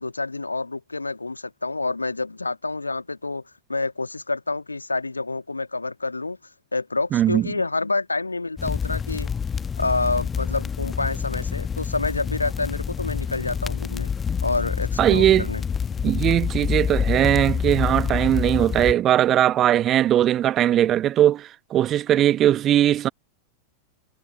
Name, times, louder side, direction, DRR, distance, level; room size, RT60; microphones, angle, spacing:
voice 1, 0.0-3.4 3.7-6.4 6.7-9.3 9.8-14.1 14.4-15.6, left 3 dB, 80° left, 1.6 m, -28 dB
voice 2, 7.1-7.5 15.0-15.5 16.0-23.1, right 12 dB, 30° right, 0.9 m, -19 dB
sound 1, 8.6-18.9, left 6 dB, 20° left, 1.0 m, -27 dB
figure-of-eight pair, 90°, 0 cm